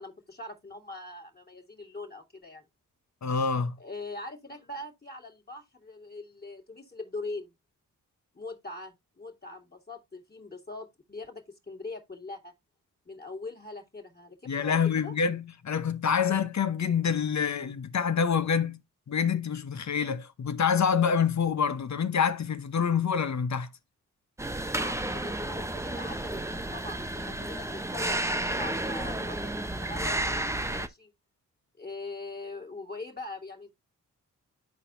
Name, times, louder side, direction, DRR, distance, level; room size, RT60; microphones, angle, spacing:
voice 1, 0.0-2.6 3.8-7.5 8.3-12.5 13.1-15.1 24.8-31.1 31.8-33.7, left 2 dB, 25° left, 2.1 m, -42 dB
voice 2, 3.2-3.7 14.5-18.8 19.1-23.7, left 6 dB, 50° left, 0.9 m, -26 dB
sound 1, 24.4-30.9, right 1 dB, 10° right, 0.8 m, -32 dB
12.0 x 4.2 x 2.6 m
supercardioid pair, 40°, 35 cm